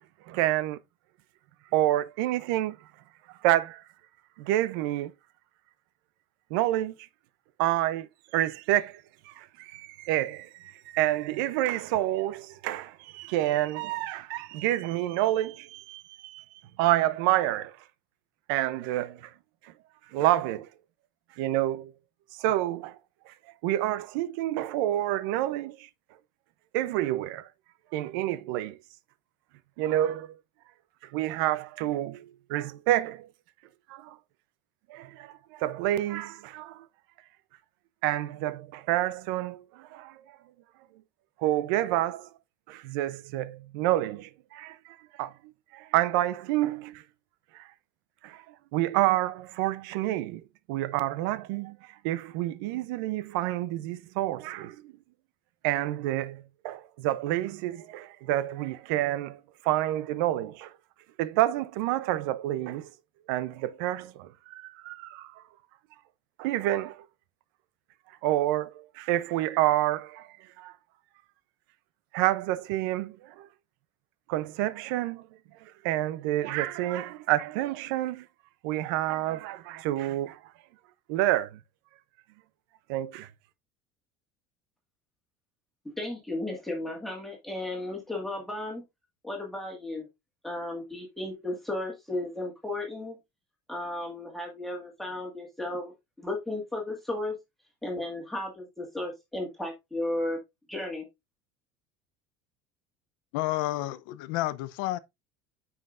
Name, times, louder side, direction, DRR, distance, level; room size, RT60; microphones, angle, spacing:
voice 1, 0.3-0.8 1.7-2.8 3.3-3.8 4.4-5.1 6.5-6.9 7.6-8.1 8.3-16.4 16.8-17.8 18.5-19.3 19.6-19.7 20.1-20.7 21.4-21.9 22.4-23.0 23.3-23.4 23.6-25.9 26.7-27.5 27.9-28.8 29.8-30.3 31.1-33.3 33.9-34.2 34.9-36.8 38.0-40.2 41.4-42.3 42.7-45.3 45.7-47.0 47.5-47.7 48.2-50.4 50.7-54.9 55.6-60.7 61.2-62.9 63.3-65.4 66.4-67.1 68.2-70.7 72.1-73.5 74.3-75.3 75.8-78.3 78.6-80.4 81.1-81.6 82.9-83.3, right 14 dB, 80° right, 0.5 m, -28 dB
voice 2, 86.0-88.8 89.2-90.0 90.4-93.2 93.7-95.9 96.2-97.3 97.8-100.4 100.7-101.0, left 2 dB, ahead, 1.8 m, -34 dB
voice 3, 103.3-105.0, left 16 dB, 75° left, 0.6 m, -30 dB
9.4 x 5.7 x 2.5 m
cardioid pair, 170°, 11 cm